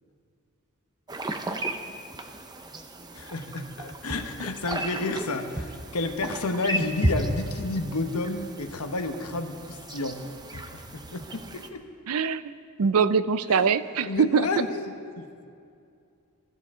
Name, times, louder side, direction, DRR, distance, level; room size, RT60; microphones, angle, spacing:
sound 1, 1.1-11.7, right 1 dB, 20° right, 0.7 m, -34 dB
voice 1, 3.1-10.2 10.5-11.8 13.5-13.7 14.1-15.5, left 2 dB, 80° left, 6 dB, 1.1 m, -31 dB
voice 2, 12.1-14.5, right 6 dB, 75° right, 15 dB, 0.5 m, -23 dB
21.0 x 13.5 x 3.7 m, 2.4 s
head